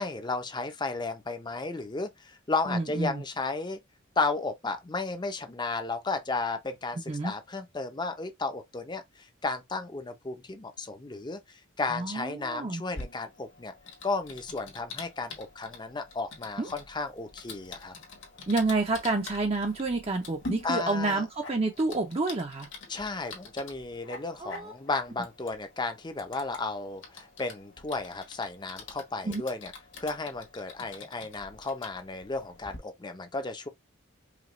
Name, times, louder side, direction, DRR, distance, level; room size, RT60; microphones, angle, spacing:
voice 1, 0.0-3.8 4.2-13.7 14.0-17.9 20.6-21.3 22.9-29.7 30.0-33.7, left 3 dB, 20° left, 0.6 m, -34 dB
voice 2, 2.7-3.2 7.1-7.3 11.9-12.8 16.6-16.7 18.5-22.7 24.4-24.7 29.2-29.4, right 3 dB, 30° right, 0.6 m, -29 dB
Typing, 12.9-32.8, left 3 dB, 65° left, 1.5 m, -46 dB
4.9 x 2.3 x 3.1 m
head